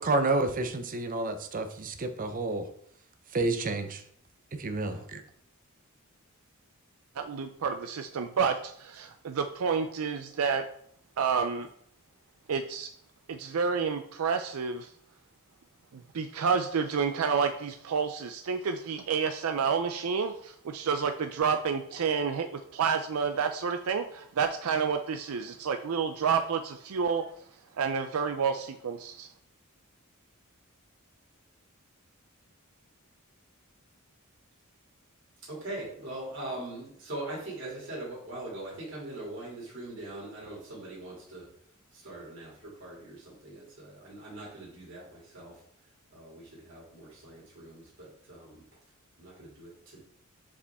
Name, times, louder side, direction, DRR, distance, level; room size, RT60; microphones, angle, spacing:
voice 1, 0.0-2.7 3.3-4.0 4.6-5.2, right 2 dB, 40° right, 0.7 m, -29 dB
voice 2, 7.2-10.6 11.2-11.7 12.5-12.9 13.3-14.9 15.9-27.2 27.8-29.3, right 6 dB, 80° right, 0.5 m, -29 dB
voice 3, 35.5-41.5 41.9-45.6 46.1-48.6 49.2-50.0, right 1 dB, 60° right, 2.8 m, -42 dB
6.8 x 5.0 x 3.5 m
head